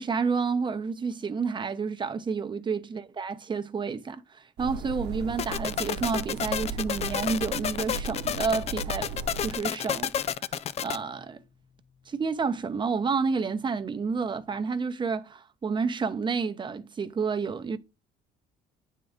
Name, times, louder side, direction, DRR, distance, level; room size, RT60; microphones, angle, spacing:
voice 1, 0.0-9.1 9.4-10.5 10.8-11.4 12.1-17.8, right 5 dB, 30° right, 0.8 m, -30 dB
sound 1, 4.6-9.6, right 4 dB, 80° right, 0.9 m, -37 dB
sound 2, 5.4-11.0, left 9 dB, 40° left, 0.4 m, -30 dB
9.1 x 3.7 x 3.6 m
cardioid pair, 110°, 17 cm